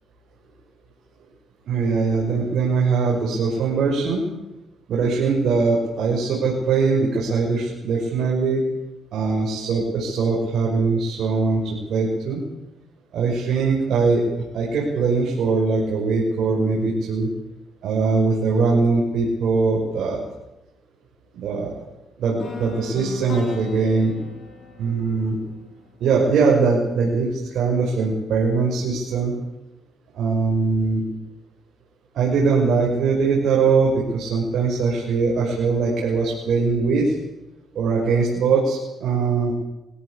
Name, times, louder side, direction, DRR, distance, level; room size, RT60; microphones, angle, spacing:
voice 1, 1.7-4.2 4.9-8.6 9.1-12.4 13.1-14.2 14.5-17.3 17.8-20.2 21.3-21.8 22.2-24.1 24.8-25.4 26.0-29.3 30.1-31.0 32.1-37.1 37.7-39.5, right 4 dB, 70° right, -2 dB, 6.1 m, -21 dB
sound 1, 22.4-26.4, left 4 dB, 60° left, 6.9 m, -38 dB
23.0 x 16.5 x 8.5 m, 0.96 s
cardioid pair, 90°, 0 cm